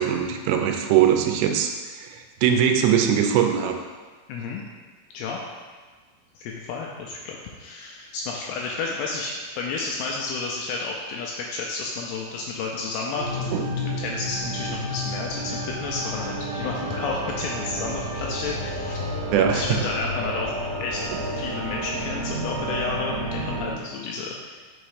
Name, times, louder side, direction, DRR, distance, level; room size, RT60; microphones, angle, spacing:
voice 1, 0.0-3.8 13.5-13.8 19.3-19.8 21.1-21.2, right 9 dB, 90° right, 5 dB, 2.8 m, -21 dB
voice 2, 4.3-4.6 5.1-5.4 6.4-13.5 13.8-19.0 19.3-24.6, left 4 dB, 85° left, -1 dB, 2.3 m, -31 dB
sound 1, 13.1-23.7, equal, 75° right, 2.3 m, -31 dB
sound 2, 16.0-22.3, equal, 60° left, 1.2 m, -40 dB
6.5 x 3.0 x 4.8 m, 1.4 s
omnidirectional pair, 5.0 m